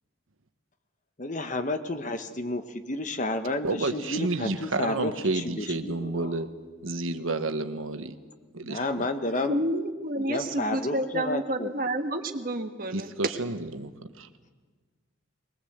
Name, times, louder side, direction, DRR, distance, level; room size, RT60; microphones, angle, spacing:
voice 1, 1.2-6.3 8.6-9.6 10.3-11.7, left 2 dB, 35° left, 8 dB, 1.2 m, -31 dB
voice 2, 3.6-6.5 6.8-8.1 8.5-9.1 12.9-13.9 14.2-14.3, right 2 dB, 80° right, 9 dB, 1.3 m, -30 dB
voice 3, 9.4-13.1, right 1 dB, 45° right, 6 dB, 1.4 m, -29 dB
21.5 x 20.0 x 8.0 m, 1.4 s
head